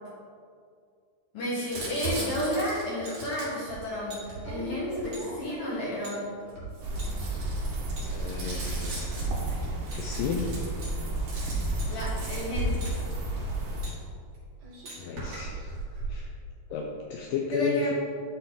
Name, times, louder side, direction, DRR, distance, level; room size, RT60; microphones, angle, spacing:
voice 1, 1.3-4.2 4.5-6.2 11.9-12.8 17.5-17.9, left 1 dB, 60° left, -6 dB, 1.5 m, -31 dB
Crumpling crinkling, 1.7-5.7 6.4-13.5 14.3-14.4 14.6-16.2, right 2 dB, 50° right, 3.4 m, -39 dB
sound 1, 3.0-3.2 4.1-4.3 5.1-5.2 6.0-6.2 7.0-7.1 8.0-8.4 8.9-9.3 9.9-10.0 10.8-11.0 11.8-11.9 12.8-13.0 13.8-14.0 14.9-15.0, right 1 dB, 35° right, 1.6 m, -44 dB
sound 2, 6.8-13.9, right 1 dB, 75° right, 1.2 m, -31 dB
voice 2, 8.1-9.3 10.0-10.5 15.0-15.7 16.1-16.3 16.7-17.9, left 5 dB, 85° left, 1 dB, 2.0 m, -32 dB
11.5 x 4.5 x 3.8 m, 2.2 s
omnidirectional pair, 4.5 m